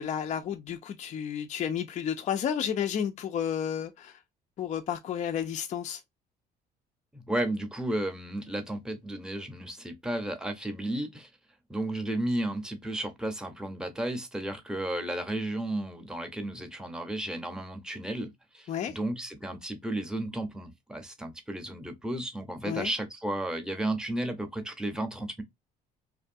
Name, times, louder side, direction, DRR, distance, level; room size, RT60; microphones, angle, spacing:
voice 1, 0.0-4.2 4.6-6.0 18.7-19.0 22.6-22.9, left 8 dB, 45° left, 0.4 m, -31 dB
voice 2, 7.1-11.3 11.7-25.4, right 1 dB, 5° right, 0.6 m, -33 dB
2.6 x 2.2 x 2.5 m
cardioid pair, 110°, 17 cm